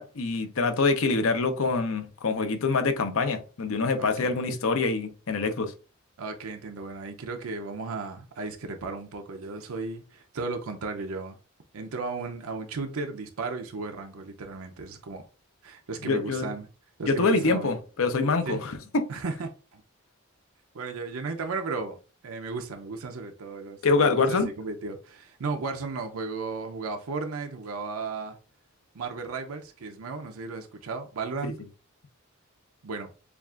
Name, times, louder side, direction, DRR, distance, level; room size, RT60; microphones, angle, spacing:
voice 1, 0.0-5.7 16.0-16.5 17.1-19.1 23.8-24.5 31.4-31.5, left 3 dB, 70° left, 0.6 m, -25 dB
voice 2, 4.0-4.3 6.2-11.4 11.7-15.2 15.6-16.7 17.0-17.8 18.4-18.6 19.1-19.8 20.7-21.9 22.2-28.4 28.9-31.6 32.8-33.1, right 4 dB, 80° right, 0.6 m, -35 dB
6.9 x 2.4 x 2.4 m
head